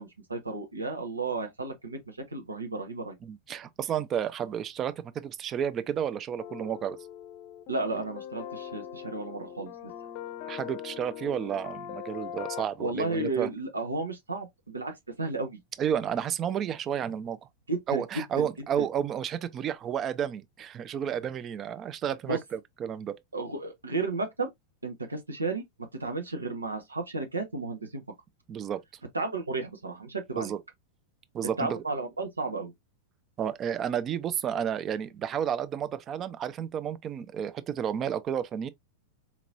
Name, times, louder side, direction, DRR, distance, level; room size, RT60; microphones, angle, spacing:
voice 1, 0.0-3.2 7.7-9.7 12.8-15.6 17.7-18.0 18.4-18.5 18.8-18.9 22.3-22.4 23.3-24.5 24.8-25.6 26.0-28.0 29.1-30.5 31.6-32.7, right 3 dB, 80° right, 0.9 m, -33 dB
voice 2, 3.2-7.0 10.5-13.5 15.8-17.4 17.9-23.2 28.5-28.8 30.4-30.6 31.3-31.8 33.4-38.7, right 9 dB, 30° right, 0.5 m, -31 dB
sound 1, 6.4-12.6, left 10 dB, 45° left, 0.6 m, -41 dB
4.3 x 3.0 x 2.5 m
figure-of-eight pair, 90°, 0 cm